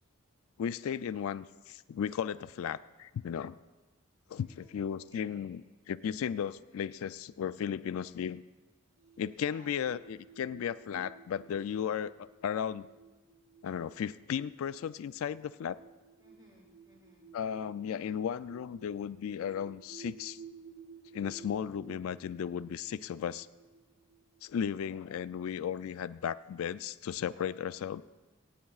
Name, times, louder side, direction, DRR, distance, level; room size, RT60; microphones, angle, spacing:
voice 1, 0.6-3.6 4.3-8.4 9.2-12.9 13.6-15.8 17.3-20.4 21.1-23.5 24.4-28.0, left 8 dB, 75° left, 14 dB, 0.3 m, -35 dB
voice 2, 4.3-5.6 9.4-9.8 16.2-17.3, right 1 dB, 20° right, -4 dB, 3.0 m, -60 dB
sound 1, 9.0-25.3, right 5 dB, 55° right, 4.9 m, -55 dB
24.5 x 9.3 x 2.4 m, 1.2 s
head